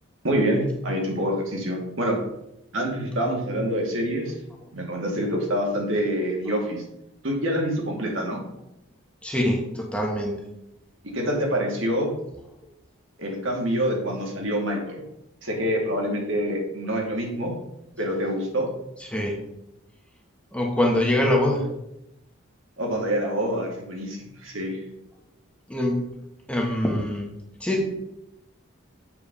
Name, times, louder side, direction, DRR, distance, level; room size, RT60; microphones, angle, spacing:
voice 1, 0.2-2.2 2.7-4.3 4.7-6.8 7.2-8.4 11.0-12.1 13.2-15.0 15.4-17.5 18.0-18.7 22.8-24.8, equal, 75° right, 0 dB, 2.3 m, -26 dB
voice 2, 9.2-10.5 19.1-19.5 20.5-21.7 25.7-26.1 26.5-27.9, left 1 dB, 5° left, -1 dB, 1.2 m, -24 dB
7.3 x 4.2 x 6.7 m, 0.84 s
head